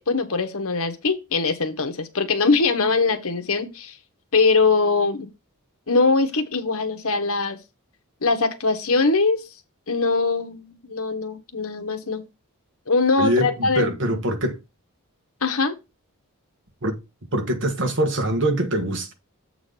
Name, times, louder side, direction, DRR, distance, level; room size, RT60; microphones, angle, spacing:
voice 1, 0.1-4.0 4.3-5.3 5.9-7.6 8.2-9.4 9.9-12.2 12.9-14.2 15.4-15.7, left 4 dB, 65° left, 1.3 m, -22 dB
voice 2, 13.2-14.6 16.8-17.0 17.3-19.1, right 1 dB, 60° right, 1.5 m, -23 dB
7.6 x 3.9 x 5.1 m
head